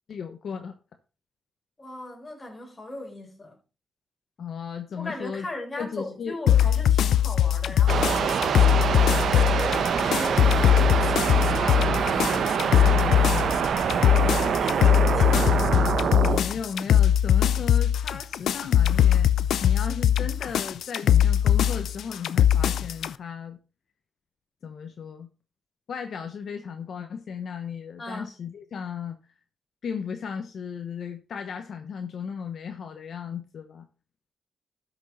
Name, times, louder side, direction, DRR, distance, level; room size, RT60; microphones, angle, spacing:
voice 1, 0.1-0.8 4.4-5.5 5.8-6.4 12.7-13.6 16.4-19.3 19.6-23.6 24.6-25.3 25.9-29.2 29.8-33.9, left 6 dB, 70° left, 1.0 m, -35 dB
voice 2, 1.8-3.6 5.0-8.4 9.1-12.7 13.9-16.1 28.0-28.3, left 2 dB, 30° left, 4.2 m, -39 dB
sound 1, 6.5-23.1, left 10 dB, 90° left, 0.5 m, -21 dB
sound 2, 7.9-16.4, right 7 dB, 75° right, 1.0 m, -25 dB
13.0 x 6.3 x 4.2 m
cardioid pair, 90°, 0 cm